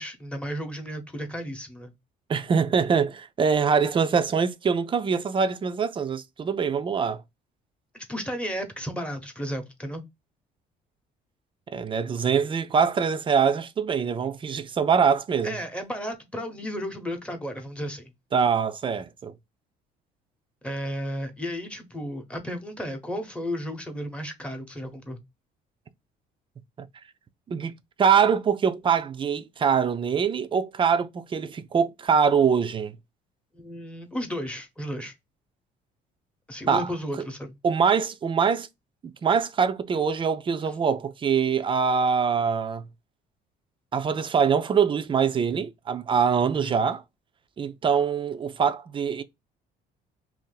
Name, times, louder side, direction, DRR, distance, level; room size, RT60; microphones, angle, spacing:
voice 1, 0.0-1.9 7.9-10.0 15.4-18.0 20.6-25.2 33.5-35.1 36.5-37.5 46.5-46.8, equal, 5° left, 0.9 m, -33 dB
voice 2, 2.3-7.2 11.7-15.6 18.3-19.3 27.5-27.7 28.0-33.0 36.7-36.9 37.6-38.7 39.0-42.9 43.9-47.0 47.6-49.2, right 6 dB, 30° right, 0.4 m, -23 dB
2.7 x 2.5 x 3.8 m
cardioid pair, 110°, 17 cm